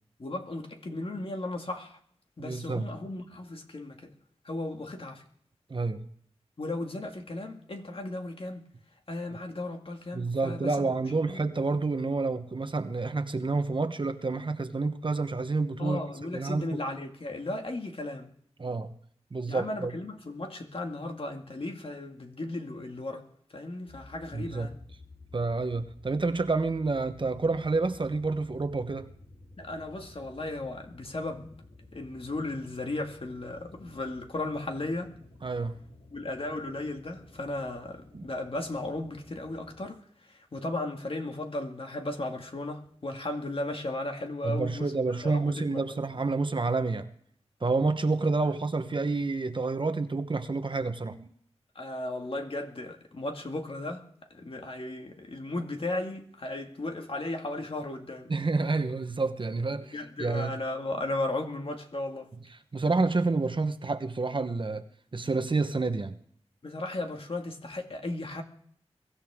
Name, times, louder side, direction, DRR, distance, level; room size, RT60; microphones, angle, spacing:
voice 1, 0.2-2.0 2.4-4.1 4.4-5.2 6.6-8.6 9.1-10.9 11.3-11.4 15.8-18.3 19.5-23.3 23.5-24.8 29.6-31.5 31.9-35.1 36.1-44.9 45.2-46.0 51.8-58.3 59.8-62.3 66.6-68.4, left 2 dB, 55° left, 2.1 m, -35 dB
voice 2, 2.4-2.9 5.7-6.1 10.1-16.0 16.3-16.8 18.6-18.9 19.3-19.9 24.3-24.7 25.3-29.1 35.4-35.8 38.1-38.2 44.4-47.1 47.6-51.3 58.3-60.5 62.7-64.9 65.1-66.2, right 3 dB, 45° right, 1.1 m, -29 dB
sound 1, 23.9-39.9, left 2 dB, 75° left, 5.3 m, -53 dB
23.0 x 14.0 x 3.7 m
wide cardioid pair, 80°, 12 cm